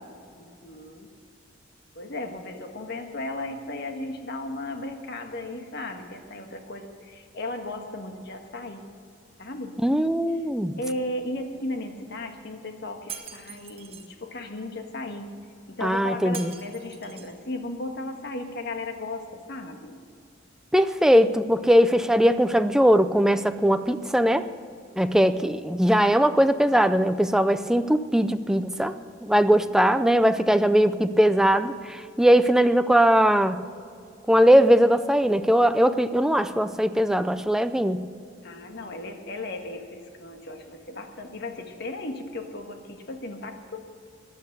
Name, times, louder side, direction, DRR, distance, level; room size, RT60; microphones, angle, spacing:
voice 1, 0.4-1.1 1.9-8.8 9.4-9.7 10.8-15.3 15.7-20.0 38.4-43.8, left 2 dB, 60° left, 5 dB, 1.5 m, -35 dB
voice 2, 9.8-10.7 15.8-16.5 20.7-24.5 25.0-29.0 29.2-33.6 34.3-38.0, equal, 5° right, 10 dB, 0.5 m, -20 dB
Shatter, 13.1-14.1 16.3-17.4, right 7 dB, 30° right, 1.3 m, -41 dB
15.0 x 10.5 x 6.6 m, 2.4 s
head